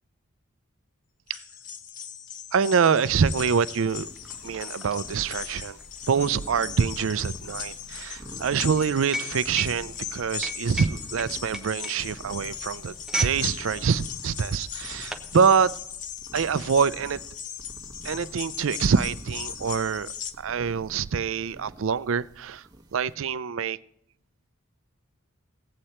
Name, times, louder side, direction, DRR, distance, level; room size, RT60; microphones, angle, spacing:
sound 1, 1.3-20.3, left 8 dB, 40° left, 0.7 m, -39 dB
voice 1, 2.5-4.1 4.4-5.8 6.1-12.9 13.2-15.7 16.3-17.2 18.0-20.1 20.4-22.6 22.9-23.8, right 6 dB, 70° right, 18 dB, 0.4 m, -25 dB
sound 2, 3.6-13.4 13.7-14.0 14.7-15.3, right 1 dB, 5° right, 0.7 m, -35 dB
sound 3, 3.9-23.1, right 1 dB, 20° right, 1.1 m, -48 dB
17.5 x 8.3 x 4.3 m, 0.76 s
head